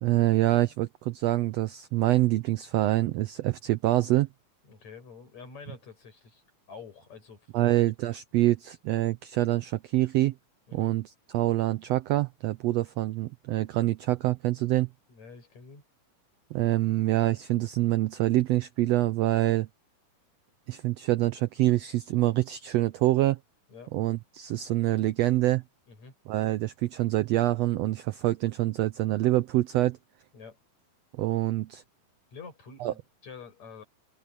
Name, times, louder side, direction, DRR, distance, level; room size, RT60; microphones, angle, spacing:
voice 1, 0.0-4.3 7.5-10.3 10.7-14.9 16.5-19.7 20.7-23.4 23.9-25.6 26.3-30.0 31.2-31.8 32.8-32.9, right 16 dB, 90° right, 1.4 m, -26 dB
voice 2, 4.6-6.4 6.7-7.8 10.7-10.9 15.1-15.9 23.7-23.9 25.9-26.1 30.3-30.6 32.3-33.8, left 5 dB, 60° left, 7.4 m, -47 dB
open air
omnidirectional pair, 3.7 m